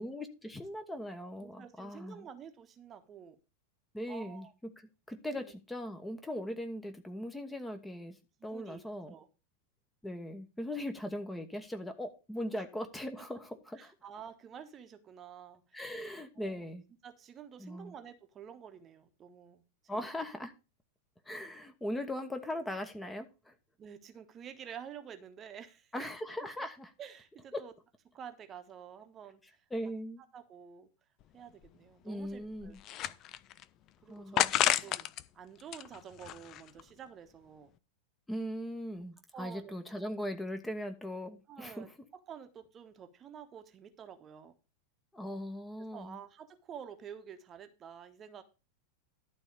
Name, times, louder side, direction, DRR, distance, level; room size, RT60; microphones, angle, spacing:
voice 1, 0.0-2.2 3.9-4.7 5.1-8.2 8.4-9.1 10.0-13.9 15.7-16.8 17.6-17.9 19.9-20.5 21.3-23.5 25.9-26.9 27.5-27.6 29.7-30.2 32.0-32.8 34.1-34.9 38.3-41.9 45.1-46.2, left 1 dB, 5° left, 7 dB, 1.1 m, -39 dB
voice 2, 1.4-3.4 4.1-4.5 5.3-5.5 8.4-8.8 9.1-9.3 12.5-12.6 13.7-15.8 16.3-16.7 17.0-20.1 23.8-26.1 26.6-26.7 27.0-27.7 28.1-29.6 30.3-30.9 31.3-32.7 33.1-33.2 34.0-35.1 35.3-37.7 39.3-39.7 41.5-44.5 45.8-48.4, right 8 dB, 25° right, 8 dB, 1.1 m, -49 dB
sound 1, 31.2-31.3 31.6-31.7 32.3-33.6 34.4-35.2 35.6-36.8, left 13 dB, 35° left, 0.5 m, -31 dB
11.5 x 4.1 x 6.6 m, 0.30 s
figure-of-eight pair, 90°, 0 cm